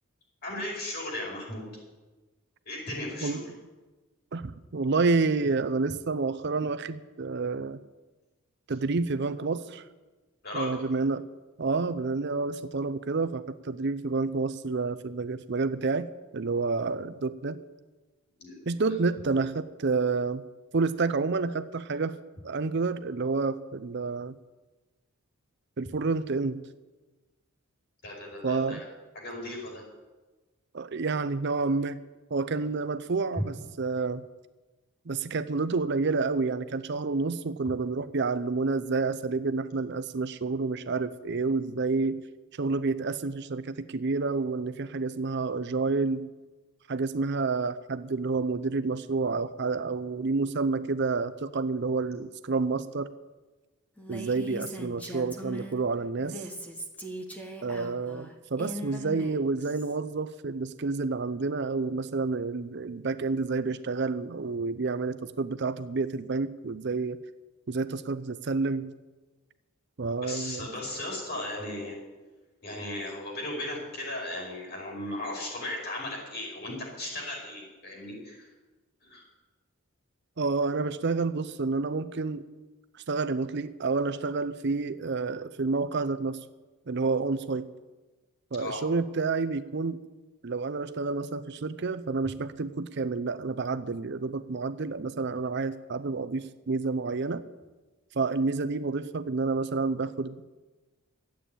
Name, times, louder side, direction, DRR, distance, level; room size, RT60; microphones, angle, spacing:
voice 1, 0.4-1.7 2.6-3.5 10.4-10.7 18.4-18.7 28.0-28.9 29.1-29.8 33.3-33.4 70.2-72.0 72.6-78.5 79.0-79.2 88.6-88.8, left 1 dB, 45° left, -3 dB, 5.1 m, -36 dB
voice 2, 4.3-7.8 8.7-9.8 10.5-11.3 11.6-17.6 18.7-20.4 20.7-22.2 22.4-24.3 25.8-26.6 28.4-28.8 30.7-32.0 32.3-34.2 35.1-42.2 42.6-46.3 46.9-53.1 54.1-56.4 57.6-67.2 67.7-68.9 70.0-70.7 80.4-82.5 83.1-86.4 86.9-87.7 88.5-90.0 90.4-97.4 98.1-100.5, right 4 dB, 50° right, 13 dB, 0.6 m, -29 dB
Female speech woman speaking, 54.0-55.8 56.2-59.9, equal, 5° left, 1.2 m, -40 dB
12.5 x 8.5 x 9.1 m, 1.2 s
head